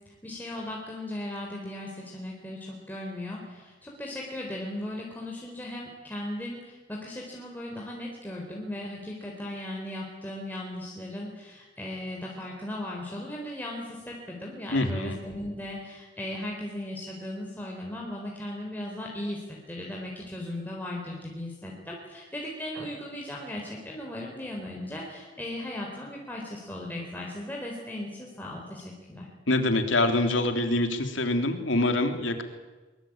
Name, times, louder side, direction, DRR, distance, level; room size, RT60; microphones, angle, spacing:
voice 1, 0.0-29.3, left 1 dB, 10° left, -2 dB, 4.2 m, -37 dB
voice 2, 14.7-15.2 29.5-32.4, left 2 dB, 80° left, 6 dB, 3.2 m, -25 dB
23.0 x 23.0 x 8.9 m, 1.2 s
head